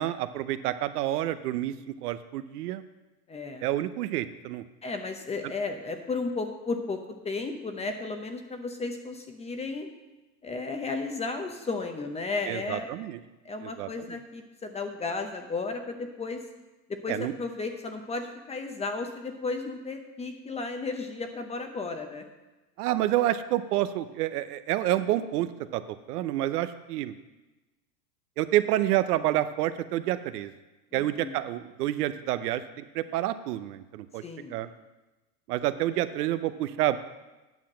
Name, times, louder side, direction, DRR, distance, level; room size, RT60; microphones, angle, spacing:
voice 1, 0.0-2.8 3.6-4.6 12.5-13.2 13.6-14.2 17.1-17.3 22.8-25.8 26.1-27.1 28.4-30.5 30.9-34.2 34.5-34.7 35.5-37.0, right 14 dB, 70° right, 12 dB, 0.8 m, -28 dB
voice 2, 3.3-3.7 4.8-7.0 7.2-9.9 10.4-12.9 13.4-16.4 16.9-22.2 30.9-31.4 34.2-34.5, left 3 dB, 15° left, 6 dB, 0.7 m, -34 dB
9.3 x 5.8 x 7.3 m, 1.1 s
supercardioid pair, 130°, 49 cm